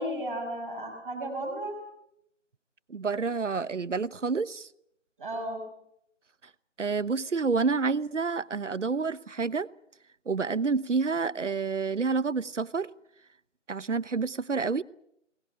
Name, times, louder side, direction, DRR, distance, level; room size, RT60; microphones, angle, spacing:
voice 1, 0.0-1.8 5.2-5.6, right 1 dB, 10° right, 4.0 m, -34 dB
voice 2, 2.9-4.7 6.8-9.7 10.3-12.9 13.7-14.8, right 4 dB, 70° right, 1.0 m, -28 dB
23.0 x 19.0 x 9.0 m
figure-of-eight pair, 175°, 38 cm